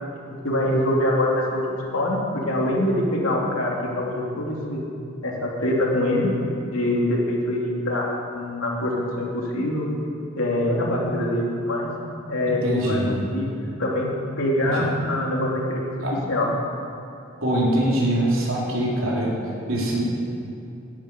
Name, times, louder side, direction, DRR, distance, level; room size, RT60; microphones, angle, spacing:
voice 1, 0.0-4.8 5.2-6.3 6.7-9.9 10.4-11.9 12.3-13.0 13.3-13.5 13.8-16.5, left 1 dB, 80° left, -2 dB, 3.0 m, -24 dB
voice 2, 12.6-13.1 16.0-16.1 17.4-20.1, right 1 dB, 70° right, -4 dB, 3.9 m, -23 dB
11.0 x 11.0 x 9.1 m, 2.7 s
head